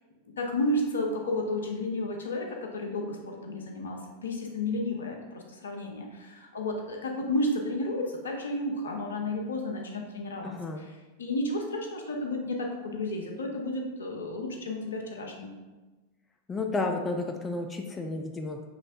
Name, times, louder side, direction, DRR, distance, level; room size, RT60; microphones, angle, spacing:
voice 1, 0.4-10.5 11.2-15.5, left 1 dB, 70° left, 2 dB, 0.6 m, -32 dB
voice 2, 10.4-10.8 16.5-18.7, left 3 dB, 15° left, 3 dB, 0.3 m, -32 dB
5.8 x 3.1 x 2.5 m, 1.2 s
figure-of-eight pair, 90°, 0 cm